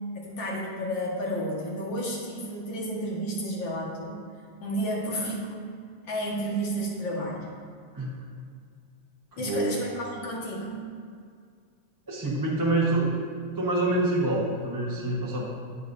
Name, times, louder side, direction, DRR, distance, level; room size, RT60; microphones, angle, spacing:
voice 1, 0.1-4.2 4.6-5.6 6.0-7.5 9.4-10.7, equal, 80° left, -3 dB, 2.3 m, -31 dB
voice 2, 9.3-9.7 12.1-13.1 13.6-15.5, right 2 dB, 15° right, -5 dB, 0.9 m, -26 dB
15.5 x 5.2 x 2.7 m, 2.1 s
omnidirectional pair, 2.0 m